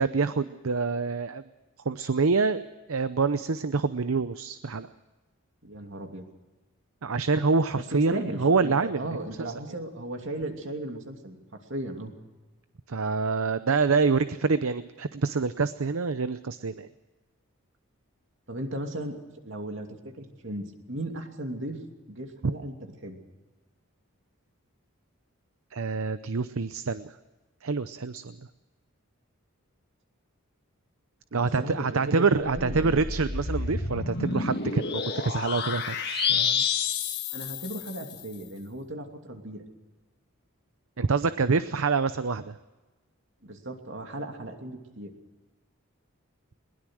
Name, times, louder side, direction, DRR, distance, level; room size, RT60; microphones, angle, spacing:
voice 1, 0.0-1.4 1.8-4.9 7.0-9.1 12.9-16.9 25.7-27.1 27.6-28.4 31.3-36.6 41.0-42.6, right 4 dB, 75° right, 12 dB, 0.7 m, -26 dB
voice 2, 5.6-6.2 7.7-11.4 11.7-12.1 18.5-19.2 19.4-21.8 22.1-22.8 23.0-23.2 31.3-33.0 37.3-39.6 43.4-45.1, right 1 dB, 60° right, 4 dB, 2.9 m, -36 dB
sound 1, 32.4-38.2, left 5 dB, 50° left, 1.7 m, -30 dB
21.5 x 20.5 x 6.3 m, 1.2 s
head